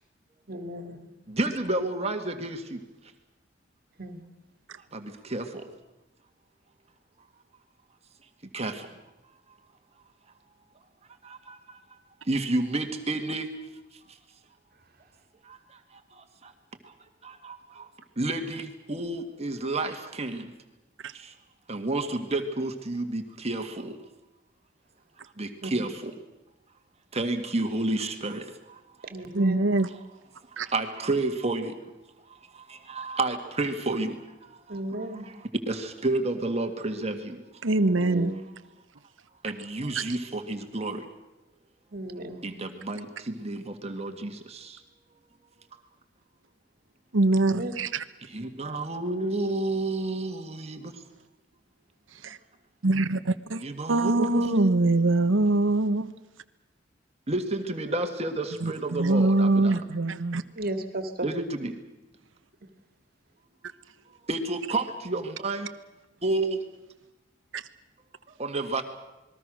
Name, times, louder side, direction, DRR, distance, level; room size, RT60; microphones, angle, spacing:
voice 1, 0.5-1.0 4.0-4.2 25.6-25.8 29.1-29.6 34.7-35.3 37.8-38.4 41.9-42.4 47.4-47.7 60.6-61.1, right 1 dB, 50° right, 7 dB, 2.2 m, -34 dB
voice 2, 1.3-2.8 4.9-5.7 8.5-8.9 11.2-11.8 12.2-13.5 14.1-14.2 15.4-16.5 16.8-16.9 17.2-17.9 18.2-20.5 21.1-21.3 21.7-24.0 25.4-26.2 27.1-29.1 30.5-31.8 32.3-37.4 39.4-41.1 42.4-44.8 48.2-51.0 52.2-52.3 53.6-54.8 57.3-59.8 61.2-61.8 64.3-65.7 66.2-66.6 68.4-68.9, right 2 dB, 35° right, 5 dB, 1.9 m, -31 dB
voice 3, 29.3-29.9 30.6-30.7 37.6-38.3 47.1-48.0 52.2-52.4 52.8-53.6 53.9-56.1 58.6-60.4 67.5-67.6, right 2 dB, 90° right, 11 dB, 1.1 m, -23 dB
28.0 x 21.0 x 6.4 m, 0.99 s
head